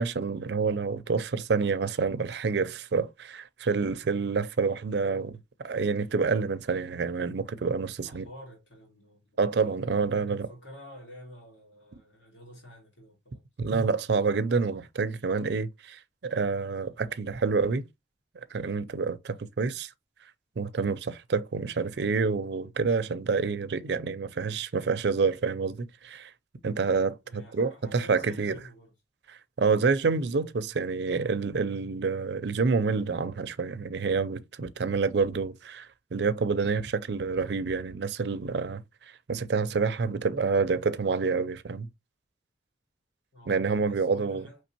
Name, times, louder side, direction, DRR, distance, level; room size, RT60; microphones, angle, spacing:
voice 1, 0.0-5.3 5.6-8.3 9.4-10.5 13.6-17.8 18.5-19.9 20.6-26.3 26.6-28.5 29.6-38.8 39.3-41.9 43.5-44.4, right 4 dB, 65° right, 0.5 m, -28 dB
voice 2, 8.0-9.4 10.3-13.4 27.2-28.9 43.3-44.6, equal, 75° left, 2.1 m, -49 dB
5.3 x 3.2 x 2.8 m
head